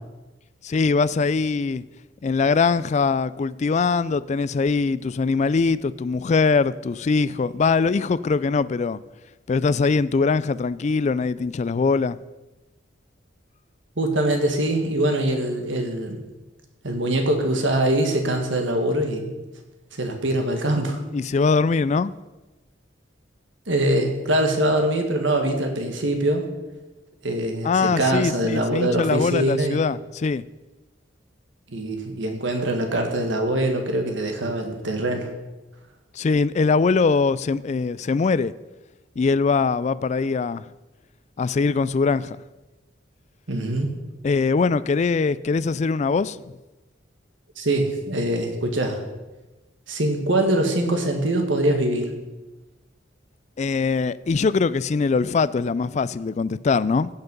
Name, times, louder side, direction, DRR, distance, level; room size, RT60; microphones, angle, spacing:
voice 1, 0.6-1.8 2.2-9.0 9.5-12.2 21.1-22.1 27.6-30.4 36.1-38.5 39.2-40.6 41.4-42.4 44.2-46.4 53.6-57.1, left 4 dB, 35° left, 0.3 m, -22 dB
voice 2, 14.0-16.2 16.8-19.3 19.9-21.0 23.7-26.5 27.2-29.8 31.7-35.3 43.5-43.9 47.6-49.0 49.9-52.1, right 1 dB, 75° right, 1.8 m, -23 dB
16.0 x 5.9 x 5.3 m
head